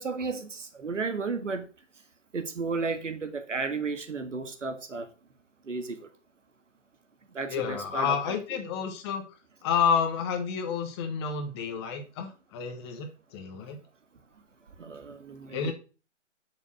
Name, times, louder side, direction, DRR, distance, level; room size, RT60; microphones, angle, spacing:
voice 1, 0.0-1.7 2.3-5.1 5.6-6.1 7.3-8.4 14.8-15.7, right 4 dB, 75° right, 1.9 m, -33 dB
voice 2, 7.5-9.2 9.6-13.8 15.5-15.7, left 7 dB, 20° left, 1.4 m, -30 dB
7.0 x 6.4 x 6.3 m
figure-of-eight pair, 145°, 37 cm